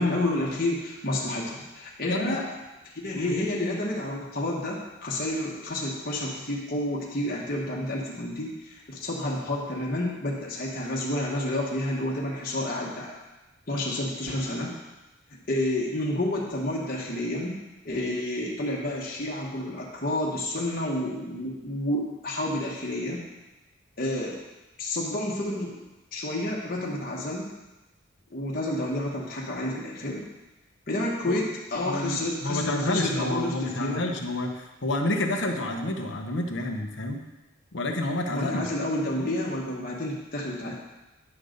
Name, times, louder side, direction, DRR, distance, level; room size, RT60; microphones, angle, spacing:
voice 1, 0.0-2.5 3.0-13.1 13.7-14.7 15.5-17.6 17.8-23.2 24.0-24.3 24.8-25.7 26.1-27.5 28.3-30.2 30.9-34.0 38.3-40.7, left 1 dB, 45° left, -4 dB, 1.3 m, -30 dB
voice 2, 31.8-37.2 37.7-38.6, left 1 dB, 60° left, 3 dB, 1.0 m, -29 dB
9.9 x 3.9 x 6.6 m, 1.1 s
head